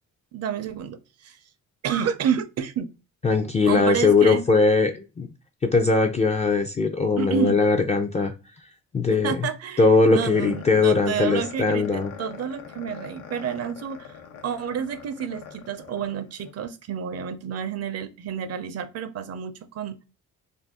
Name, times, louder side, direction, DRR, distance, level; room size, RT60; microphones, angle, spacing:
voice 1, 0.3-1.4 1.8-2.9 3.7-4.5 7.2-7.6 9.2-20.0, right 7 dB, 55° right, 0.5 m, -30 dB
voice 2, 3.2-5.3 5.6-8.3 8.9-9.5 9.8-12.1, left 4 dB, 25° left, 0.4 m, -20 dB
sound 1, 10.1-16.5, left 7 dB, 90° left, 0.7 m, -42 dB
2.6 x 2.3 x 3.5 m
cardioid pair, 90°, 30 cm